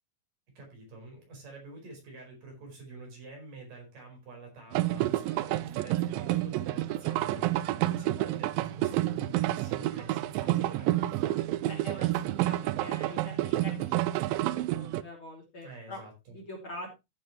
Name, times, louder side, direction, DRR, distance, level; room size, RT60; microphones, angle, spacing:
voice 1, 0.6-11.5 15.6-16.4, right 3 dB, 60° right, 1 dB, 6.3 m, -47 dB
sound 1, 4.7-15.0, right 15 dB, 80° right, 2.2 m, -29 dB
voice 2, 11.7-16.0 16.3-16.9, left 1 dB, 35° left, 0 dB, 3.3 m, -44 dB
14.5 x 7.7 x 3.1 m, 0.24 s
omnidirectional pair, 4.4 m